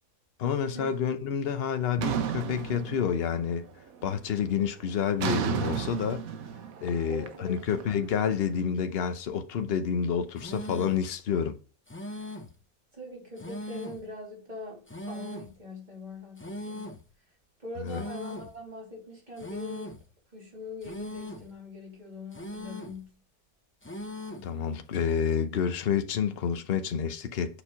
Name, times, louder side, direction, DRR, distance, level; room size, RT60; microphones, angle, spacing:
voice 1, 0.4-3.7 4.0-6.2 6.8-11.6 17.8-18.0 24.4-27.6, left 7 dB, 50° left, 0.8 m, -29 dB
sound 1, 2.0-3.5 3.9-4.3 5.2-8.3, right 8 dB, 70° right, 1.1 m, -33 dB
voice 2, 7.0-7.6 12.9-17.0 17.6-19.9 20.3-23.2, left 2 dB, 30° right, 3.4 m, -42 dB
sound 2, 10.4-11.1 11.9-12.6 13.4-14.1 14.9-15.6 16.4-17.1 17.9-18.6 19.4-20.1 20.8-21.5 22.3-23.0 23.8-24.5, left 1 dB, 15° left, 0.4 m, -39 dB
7.0 x 4.4 x 5.7 m
omnidirectional pair, 1.6 m